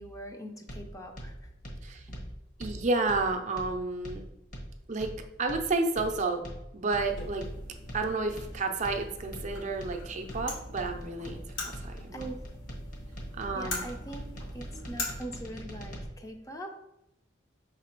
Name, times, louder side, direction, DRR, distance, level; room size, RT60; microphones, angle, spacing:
voice 1, 0.0-1.5 2.1-2.3 12.1-12.4 13.5-14.3 14.5-16.8, right 1 dB, 15° left, 4 dB, 0.5 m, -42 dB
sound 1, 0.7-16.0, equal, 45° left, 1.1 m, -42 dB
voice 2, 2.6-4.2 4.9-5.1 5.4-6.5 6.7-7.5 7.9-12.3 13.3-13.9, right 3 dB, 40° right, 4 dB, 0.5 m, -31 dB
sound 2, 7.1-15.1, left 2 dB, 80° left, 1.6 m, -41 dB
5.5 x 4.0 x 4.5 m, 0.87 s
head